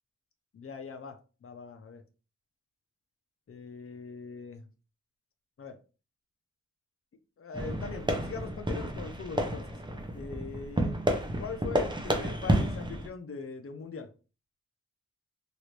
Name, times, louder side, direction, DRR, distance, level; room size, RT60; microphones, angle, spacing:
voice 1, 0.5-2.0 3.5-4.6 5.6-5.8 7.4-9.8 10.1-10.9 11.4-14.1, left 5 dB, 45° left, 0.5 m, -41 dB
sound 1, 7.5-13.1, right 1 dB, 15° right, 0.6 m, -31 dB
3.0 x 2.5 x 3.1 m
wide cardioid pair, 95°, 31 cm